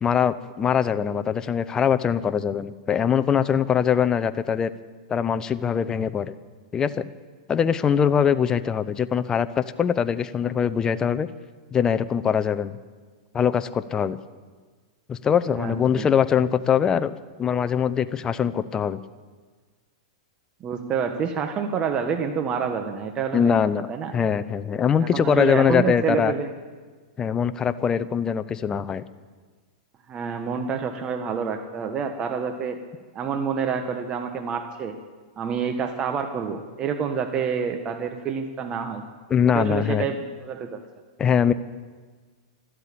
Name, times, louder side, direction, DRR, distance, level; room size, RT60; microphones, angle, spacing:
voice 1, 0.0-4.7 5.1-6.3 6.7-7.1 7.5-11.3 11.7-12.8 13.3-14.2 15.1-17.1 17.4-19.0 23.3-23.9 24.1-26.3 27.2-29.0 39.3-40.1 41.2-41.5, left 7 dB, 20° left, 12 dB, 0.7 m, -22 dB
voice 2, 15.5-16.1 20.6-23.6 23.9-24.1 25.0-26.5 30.1-32.8 33.1-34.9 35.4-39.0 39.4-40.8, right 6 dB, 30° right, 6 dB, 1.3 m, -28 dB
13.0 x 12.5 x 8.8 m, 1.5 s
hypercardioid pair, 125°, 3 cm